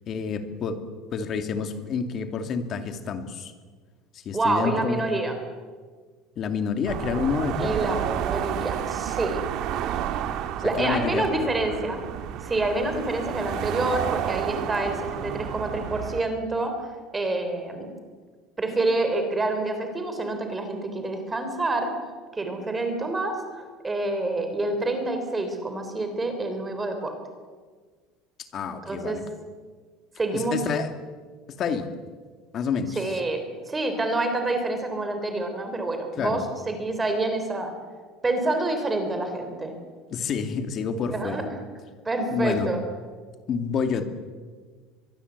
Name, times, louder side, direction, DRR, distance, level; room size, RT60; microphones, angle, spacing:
voice 1, 0.1-0.8 1.1-3.5 4.1-5.0 6.4-8.0 10.6-11.3 28.4-29.2 30.3-30.9 31.5-31.9 32.5-33.0 36.2-36.4 40.1-41.4 42.3-42.7 43.5-44.1, left 6 dB, 35° left, 7 dB, 2.3 m, -28 dB
voice 2, 4.3-5.3 7.6-9.4 10.6-12.1 12.4-16.7 17.1-17.9 18.6-21.9 22.3-27.2 28.9-29.2 30.2-30.6 33.0-37.7 38.2-39.8 41.1-41.5 42.1-42.8, right 2 dB, 15° right, 6 dB, 3.5 m, -27 dB
sound 1, 6.9-16.2, right 10 dB, 50° right, 1.9 m, -31 dB
24.0 x 22.5 x 8.2 m, 1.5 s
cardioid pair, 160°, 0 cm